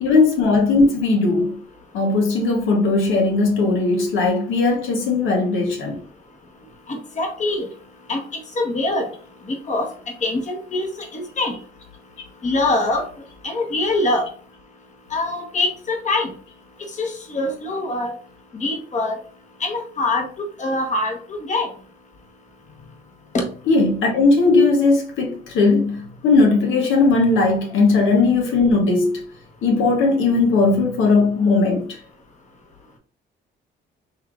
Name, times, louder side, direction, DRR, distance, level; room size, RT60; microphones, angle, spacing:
voice 1, 0.0-1.6 1.9-6.0 23.6-29.3 29.6-32.0, left 3 dB, 85° left, 1.0 m, -18 dB
voice 2, 6.9-7.7 8.1-8.2 8.6-9.1 9.5-9.9 10.2-11.5 12.4-13.1 13.4-14.3 15.1-16.3 17.0-18.1 18.5-19.2 19.6-21.7 23.3-23.4, left 2 dB, 35° left, 1.2 m, -23 dB
5.6 x 3.2 x 2.4 m
cardioid pair, 90°, 20 cm